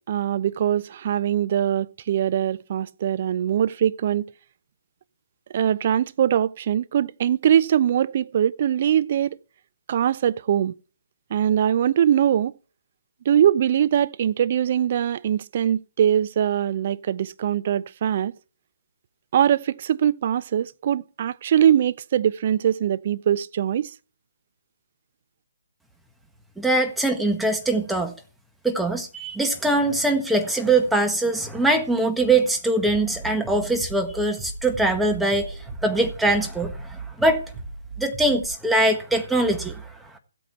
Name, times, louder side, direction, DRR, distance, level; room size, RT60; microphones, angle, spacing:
voice 1, 0.1-4.3 5.5-9.4 9.9-10.7 11.3-12.5 13.3-18.3 19.3-23.9, right 10 dB, 45° right, 0.7 m, -22 dB
voice 2, 26.6-28.1 28.6-37.4 38.0-40.2, right 2 dB, 5° right, 1.6 m, -22 dB
Bass drum, 32.8-38.5, right 2 dB, 20° left, 4.0 m, -37 dB
15.5 x 8.5 x 4.5 m
figure-of-eight pair, 140°, 0 cm